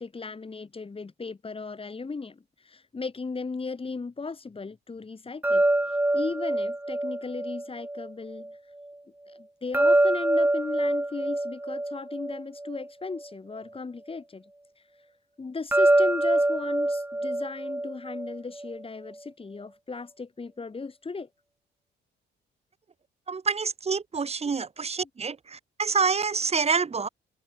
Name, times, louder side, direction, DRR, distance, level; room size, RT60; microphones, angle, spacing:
voice 1, 0.0-8.5 9.3-14.4 15.4-21.3, left 4 dB, 30° left, 4.9 m, -36 dB
sound 1, 5.4-8.5 9.7-13.3 15.7-18.8, right 1 dB, 10° right, 3.5 m, -25 dB
voice 2, 23.3-27.1, right 5 dB, 30° right, 1.7 m, -27 dB
open air
cardioid pair, 90°, 20 cm